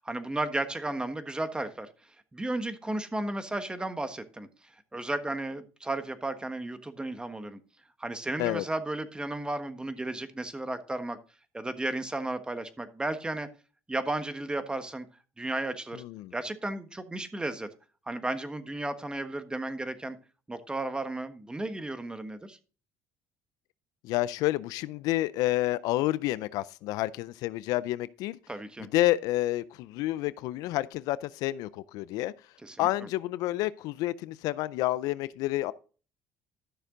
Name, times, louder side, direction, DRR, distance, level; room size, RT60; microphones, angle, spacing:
voice 1, 0.0-1.9 2.3-4.5 4.9-7.6 8.0-11.2 11.5-13.5 13.9-15.1 15.4-16.0 16.3-17.7 18.1-20.2 20.5-22.6 28.5-28.9 32.6-32.9, right 2 dB, 15° right, 1.4 m, -34 dB
voice 2, 15.9-16.3 24.0-28.4 28.8-32.3 32.8-35.7, left 16 dB, 75° left, 0.5 m, -29 dB
12.5 x 6.6 x 3.9 m
supercardioid pair, 80°, 6 cm